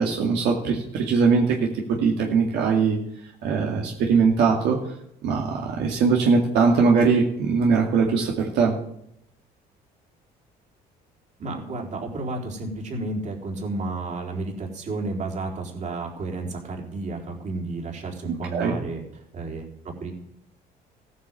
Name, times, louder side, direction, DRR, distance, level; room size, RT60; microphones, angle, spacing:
voice 1, 0.0-1.6 1.9-3.0 3.4-4.8 5.2-8.7 18.2-18.8, right 5 dB, 80° right, 0 dB, 2.3 m, -21 dB
voice 2, 11.4-19.0 19.3-20.1, right 2 dB, 45° right, 1 dB, 4.1 m, -32 dB
15.5 x 9.5 x 7.6 m, 0.76 s
cardioid pair, 110°, 17 cm